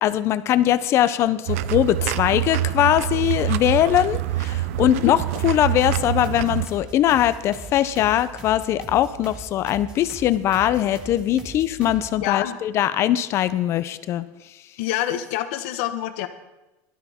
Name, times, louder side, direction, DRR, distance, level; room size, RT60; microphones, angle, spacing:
voice 1, 0.0-5.2 5.4-14.2, left 12 dB, 35° left, 14 dB, 0.5 m, -21 dB
sound 1, 1.5-6.7, right 14 dB, 80° right, 0.4 m, -26 dB
sound 2, 5.4-12.2, right 3 dB, 15° right, 1.7 m, -40 dB
voice 2, 12.2-12.6 14.8-16.3, left 13 dB, 65° left, 9 dB, 1.1 m, -26 dB
16.0 x 12.5 x 3.6 m, 1.0 s
supercardioid pair, 155°, 8 cm